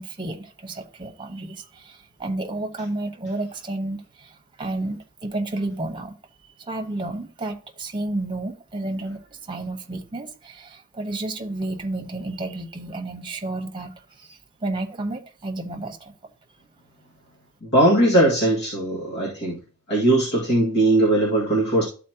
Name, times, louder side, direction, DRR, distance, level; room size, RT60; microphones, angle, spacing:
voice 1, 0.0-6.1 6.6-16.1, right 2 dB, 20° right, 4 dB, 1.1 m, -31 dB
voice 2, 17.6-19.6 19.9-21.8, right 1 dB, 55° left, -5 dB, 2.2 m, -19 dB
13.0 x 4.3 x 2.9 m, 0.37 s
head